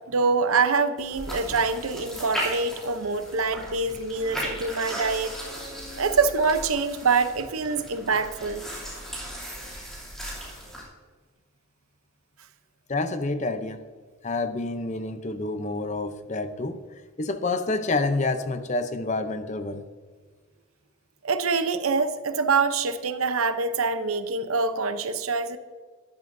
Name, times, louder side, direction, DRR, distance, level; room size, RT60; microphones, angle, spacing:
voice 1, 0.1-5.4 6.0-8.6 21.2-25.6, right 4 dB, 85° right, 10 dB, 0.7 m, -25 dB
sound 1, 1.0-10.8, equal, ahead, 2.8 m, -37 dB
Wind instrument woodwind instrument, 4.1-8.5, equal, 15° right, 2.9 m, -49 dB
voice 2, 12.9-13.8 14.2-16.8 17.2-19.8, left 3 dB, 35° left, 9 dB, 0.6 m, -28 dB
13.0 x 11.0 x 2.6 m, 1.5 s
head